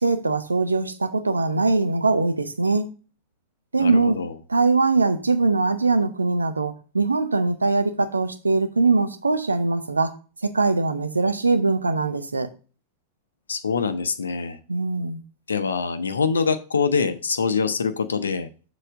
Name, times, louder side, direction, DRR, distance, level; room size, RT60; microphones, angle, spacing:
voice 1, 0.0-2.9 3.7-4.2 4.5-10.1 10.4-12.5 14.7-15.2, right 3 dB, 80° right, 0.7 m, -22 dB
voice 2, 3.8-4.3 13.5-14.6 15.5-18.5, left 5 dB, 70° left, 0.6 m, -24 dB
6.6 x 4.0 x 4.8 m
figure-of-eight pair, 90°, 0 cm